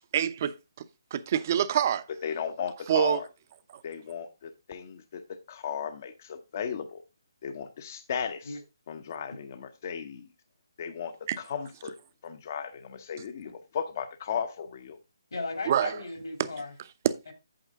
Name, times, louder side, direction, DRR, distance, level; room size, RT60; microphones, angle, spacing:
voice 1, 0.1-0.5 1.1-2.0 2.9-3.2 11.3-11.4 15.7-15.9, right 10 dB, 40° right, 0.8 m, -25 dB
voice 2, 2.2-3.3 3.8-5.2 5.5-7.0 7.4-8.6 8.9-10.3 10.8-11.9 12.2-15.0, left 7 dB, 40° left, 0.8 m, -35 dB
voice 3, 15.3-16.7 17.3-17.4, left 3 dB, 75° left, 2.8 m, -36 dB
8.8 x 7.2 x 3.6 m
hypercardioid pair, 155°, 2 cm